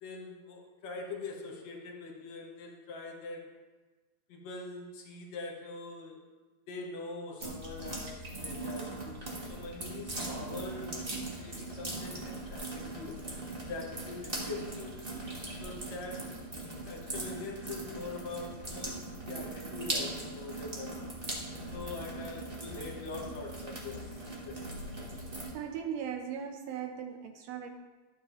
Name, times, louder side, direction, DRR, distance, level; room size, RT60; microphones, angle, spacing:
voice 1, 0.0-3.6 4.3-6.2 6.7-11.0 11.3-13.2 13.7-15.0 15.6-16.3 16.8-21.0 21.7-24.2 24.4-24.8, left 3 dB, 70° left, 0 dB, 2.3 m, -43 dB
sound 1, 7.4-25.5, right 2 dB, 40° right, 0.7 m, -40 dB
voice 2, 25.5-27.7, right 8 dB, 75° right, 5 dB, 1.8 m, -38 dB
11.5 x 7.6 x 3.0 m, 1.3 s
omnidirectional pair, 3.4 m